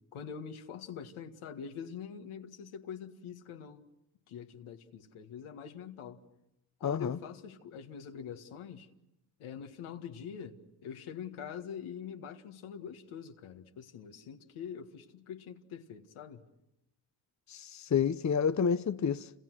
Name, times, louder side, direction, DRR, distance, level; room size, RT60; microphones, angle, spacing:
voice 1, 0.1-3.8 4.3-6.2 6.8-8.9 9.4-16.4, left 7 dB, 85° left, 2.0 m, -44 dB
voice 2, 6.8-7.2 17.5-19.3, left 7 dB, 35° left, 0.9 m, -29 dB
29.5 x 27.0 x 6.3 m
supercardioid pair, 50°, 48 cm